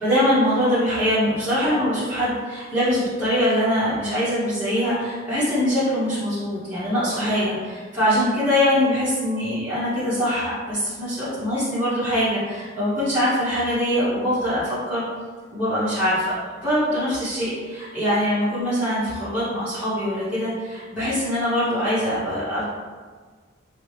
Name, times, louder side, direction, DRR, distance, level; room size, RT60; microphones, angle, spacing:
voice 1, 0.0-15.0 15.5-22.6, equal, 10° right, -13 dB, 1.1 m, -23 dB
4.1 x 2.4 x 3.3 m, 1.5 s
head